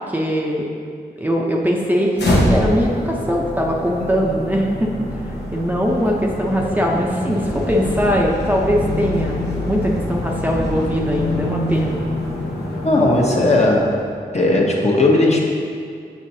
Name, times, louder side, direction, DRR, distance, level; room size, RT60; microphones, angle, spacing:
voice 1, 0.1-0.7 1.2-5.0 5.5-12.0, equal, 10° right, -2 dB, 0.6 m, -21 dB
sound 1, 2.2-14.2, left 1 dB, 90° left, 1.0 m, -25 dB
voice 2, 12.8-13.9 14.3-15.4, left 2 dB, 40° left, -2 dB, 1.0 m, -16 dB
7.3 x 5.7 x 2.7 m, 2.2 s
cardioid pair, 65°, 17 cm